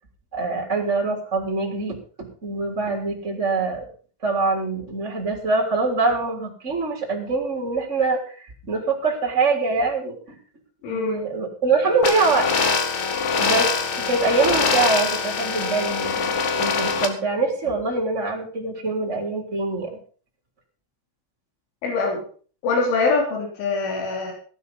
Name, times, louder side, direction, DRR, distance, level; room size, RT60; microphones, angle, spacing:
voice 1, 0.3-3.9 4.2-10.4 10.9-12.5 13.4-19.9, right 3 dB, 15° right, 0 dB, 3.6 m, -24 dB
voice 2, 10.8-11.2 21.8-22.2 22.6-24.3, left 4 dB, 90° left, 1 dB, 5.9 m, -23 dB
sound 1, 12.0-17.1, left 5 dB, 50° left, 2.7 m, -23 dB
17.0 x 10.0 x 5.6 m, 0.42 s
omnidirectional pair, 5.3 m